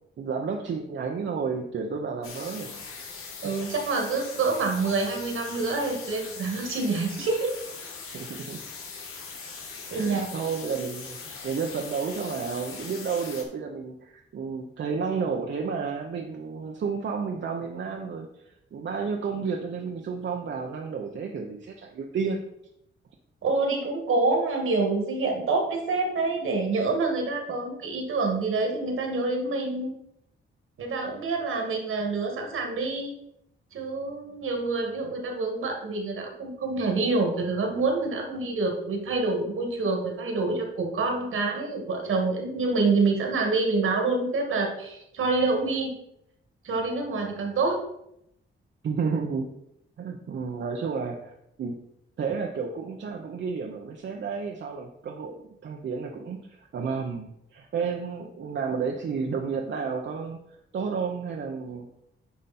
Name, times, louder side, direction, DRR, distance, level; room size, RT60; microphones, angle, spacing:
voice 1, 0.2-2.8 3.3-3.5 8.1-8.6 10.0-22.4 48.8-49.5 50.0-51.8 52.2-55.3 55.6-60.4 60.7-61.9, right 5 dB, 60° right, 1 dB, 0.9 m, -31 dB
sound 1, 2.2-13.4, left 5 dB, 85° left, 1.7 m, -41 dB
voice 2, 3.4-7.6 9.9-10.3 23.4-29.9 30.8-33.1 33.7-46.0 46.6-47.8, right 3 dB, 75° right, 2 dB, 2.1 m, -27 dB
9.6 x 5.2 x 4.3 m, 0.78 s
wide cardioid pair, 140°, 21 cm